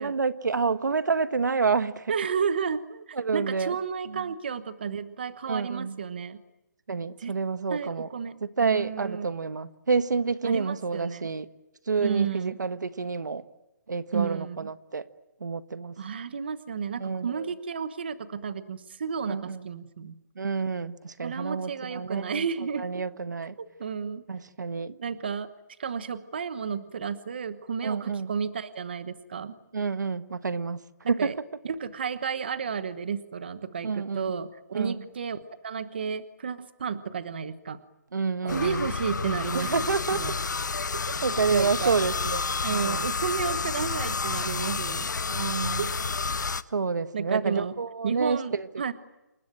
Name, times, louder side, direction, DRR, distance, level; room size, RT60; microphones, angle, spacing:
voice 1, 0.0-2.1 3.1-3.8 4.1-4.3 5.5-6.0 6.9-8.1 8.4-11.5 11.9-13.4 13.9-15.1 15.4-16.0 17.0-17.5 19.2-19.7 20.4-22.5 22.7-23.5 24.3-24.9 27.8-28.3 29.7-31.3 33.8-34.3 34.7-35.0 38.1-38.9 39.5-40.2 41.2-43.1 45.3-45.9 46.7-48.7, right 5 dB, 80° right, 1.4 m, -29 dB
voice 2, 2.1-6.4 7.2-7.4 7.7-9.3 10.4-11.3 12.0-12.6 14.1-14.7 16.0-20.1 21.2-23.0 23.6-24.2 24.9-25.5 25.8-29.5 31.0-31.3 31.6-35.4 35.6-37.8 38.4-40.3 41.0-41.2 41.5-41.9 42.6-45.1 45.8-46.0 47.1-47.7 48.0-48.9, right 6 dB, 35° right, 1.1 m, -32 dB
sound 1, 38.5-46.6, left 4 dB, 85° left, 1.1 m, -30 dB
28.0 x 21.0 x 9.1 m
hypercardioid pair, 180°, 10 cm